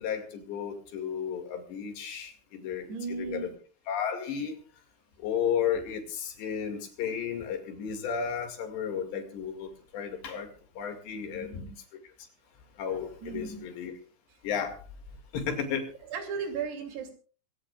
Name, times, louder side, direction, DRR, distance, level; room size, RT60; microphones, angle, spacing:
voice 1, 0.0-3.5 3.9-4.6 5.2-11.6 12.8-13.9 14.4-14.8 15.3-15.9, left 7 dB, 65° left, 5 dB, 4.2 m, -33 dB
voice 2, 2.9-3.5 11.1-11.7 13.2-13.6 16.1-17.1, right 5 dB, 60° right, 4 dB, 4.6 m, -36 dB
25.0 x 16.0 x 2.5 m, 0.38 s
omnidirectional pair, 5.5 m